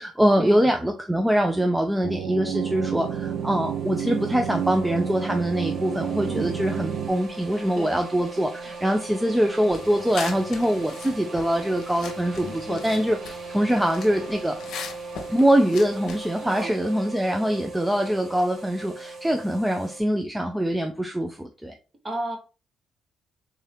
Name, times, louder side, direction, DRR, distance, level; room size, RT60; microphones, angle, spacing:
voice 1, 0.0-14.6 15.3-21.7, equal, 10° right, 4 dB, 0.4 m, -23 dB
sound 1, 2.0-7.1, right 8 dB, 80° right, 0.4 m, -30 dB
sound 2, 2.5-20.0, right 3 dB, 50° right, 0.8 m, -39 dB
sound 3, 9.6-16.6, left 5 dB, 75° left, 0.8 m, -40 dB
voice 2, 22.0-22.4, right 1 dB, 30° right, 3 dB, 1.3 m, -31 dB
3.7 x 2.8 x 3.4 m, 0.33 s
cardioid pair, 90°, 0 cm